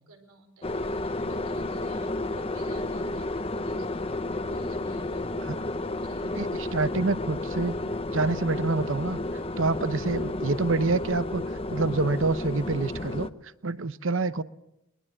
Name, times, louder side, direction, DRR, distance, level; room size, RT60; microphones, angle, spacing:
voice 1, 0.1-6.3, right 2 dB, 85° right, 4 dB, 4.9 m, -51 dB
sound 1, 0.6-13.3, left 2 dB, 25° left, 0.8 m, -32 dB
voice 2, 6.7-7.8 8.1-9.2 9.6-11.4 11.7-13.3 13.6-14.4, right 3 dB, 60° right, 14 dB, 0.8 m, -26 dB
22.5 x 22.0 x 7.8 m, 0.85 s
head